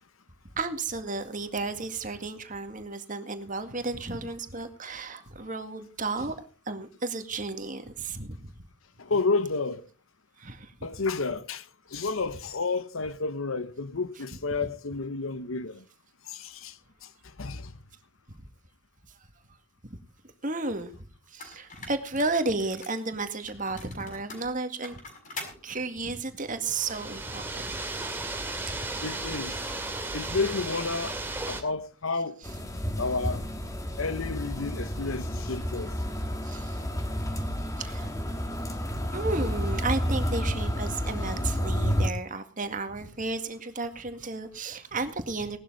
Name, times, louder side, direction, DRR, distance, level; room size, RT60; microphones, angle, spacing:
voice 1, 0.6-6.3 6.7-8.5 10.4-10.7 19.8-20.0 20.4-20.9 21.3-25.0 25.6-27.7 36.4-36.8 37.8-38.1 39.1-45.6, right 3 dB, 40° right, 2.0 m, -33 dB
voice 2, 9.0-9.8 10.8-15.8 16.3-16.8 17.0-17.1 17.4-17.7 29.0-29.6 30.1-31.2 31.5-32.4 33.0-33.4 34.0-36.0, left 3 dB, 85° left, 1.1 m, -31 dB
sound 1, 20.8-20.9 21.4-23.0 23.5-25.6, left 3 dB, 40° left, 6.3 m, -43 dB
sound 2, 26.6-31.6, right 2 dB, 10° right, 2.4 m, -34 dB
sound 3, 32.4-42.1, equal, 15° left, 1.9 m, -30 dB
18.5 x 12.5 x 4.0 m
head